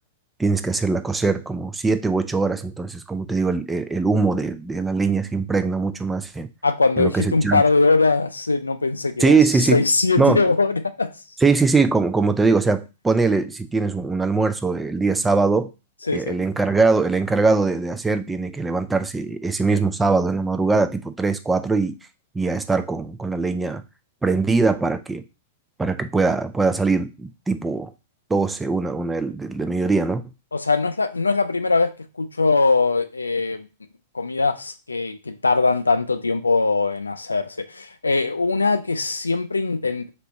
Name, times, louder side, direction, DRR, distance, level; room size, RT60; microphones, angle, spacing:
voice 1, 0.4-6.5 7.0-7.6 9.2-9.8 10.2-10.4 11.4-15.7 16.1-21.9 22.3-23.8 24.2-25.2 25.8-27.9 28.3-30.2, right 4 dB, 10° right, 0.4 m, -21 dB
voice 2, 6.6-11.1 16.1-16.3 30.5-31.9 32.2-33.7 34.1-40.1, left 3 dB, 85° left, 0.4 m, -21 dB
3.3 x 2.9 x 4.0 m
figure-of-eight pair, 100°, 0 cm